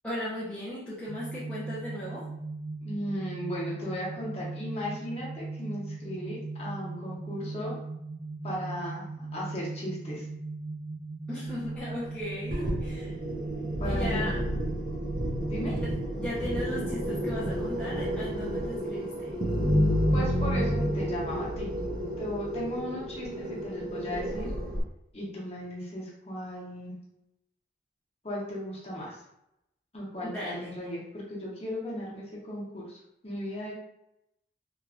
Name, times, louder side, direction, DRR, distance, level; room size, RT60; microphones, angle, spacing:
voice 1, 0.0-2.3 11.3-13.2 13.8-14.4 15.7-19.3 30.2-30.7, left 1 dB, 5° left, -9 dB, 0.5 m, -37 dB
sound 1, 1.1-16.1, right 3 dB, 70° right, 1.3 m, -39 dB
voice 2, 2.8-7.8 8.4-9.1 9.3-10.2 13.8-14.3 15.5-15.7 20.1-21.7 22.2-24.5 25.1-26.9 28.2-29.2 29.9-33.7, left 1 dB, 35° left, -5 dB, 0.8 m, -36 dB
sound 2, 12.5-24.8, equal, 50° right, 0.6 m, -30 dB
3.0 x 2.3 x 2.4 m, 0.82 s
head